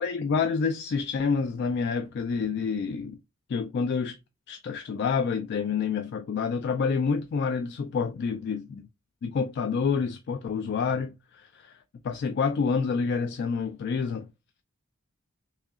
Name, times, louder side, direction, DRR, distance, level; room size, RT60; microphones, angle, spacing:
voice 1, 0.0-3.2 3.5-4.2 4.5-8.9 9.2-11.8 12.0-14.3, left 5 dB, 55° left, 0.3 m, -28 dB
3.6 x 3.1 x 2.3 m
head